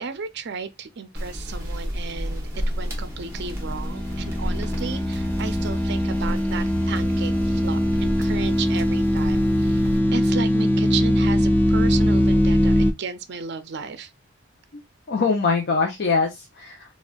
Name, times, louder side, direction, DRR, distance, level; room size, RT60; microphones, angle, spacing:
voice 1, 0.0-9.8 10.1-14.1, right 5 dB, 55° right, 0.5 m, -34 dB
sound 1, 1.2-10.0, equal, 15° right, 1.1 m, -32 dB
sound 2, 3.1-12.9, equal, 10° left, 0.4 m, -21 dB
voice 2, 15.1-16.9, left 4 dB, 55° left, 0.6 m, -23 dB
4.3 x 2.4 x 2.3 m
head